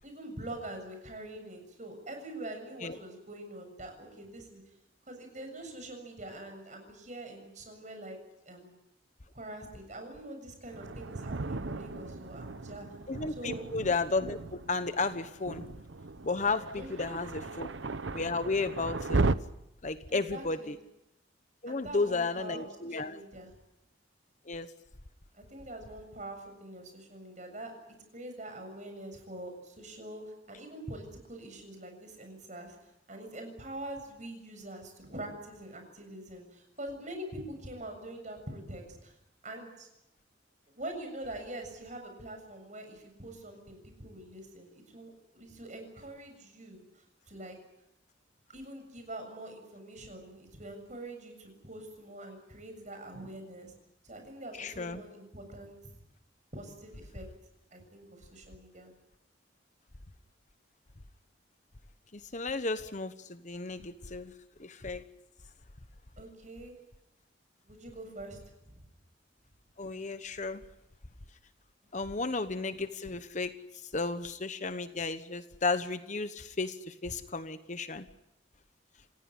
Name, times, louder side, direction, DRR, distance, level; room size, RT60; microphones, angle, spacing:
voice 1, 0.0-4.6 5.1-8.2 8.4-8.7 9.3-12.9 13.3-13.7 16.7-17.2 20.1-20.7 21.7-23.5 25.3-27.7 28.1-39.2 39.4-39.9 40.7-47.6 48.5-53.8 54.0-55.9 56.5-57.3 57.7-58.9 66.2-66.7 67.6-68.4 68.7-68.9, right 1 dB, 40° right, 5 dB, 7.1 m, -44 dB
Thunder, 10.7-19.3, right 3 dB, 75° right, 0.9 m, -36 dB
voice 2, 13.1-15.7 16.2-17.7 18.1-19.2 19.8-20.8 21.6-23.2 24.5-24.7 54.6-55.0 62.1-64.3 64.6-65.0 69.8-70.6 71.9-73.5 73.8-78.1, left 3 dB, 40° left, 11 dB, 1.1 m, -33 dB
28.5 x 16.0 x 9.9 m, 0.87 s
head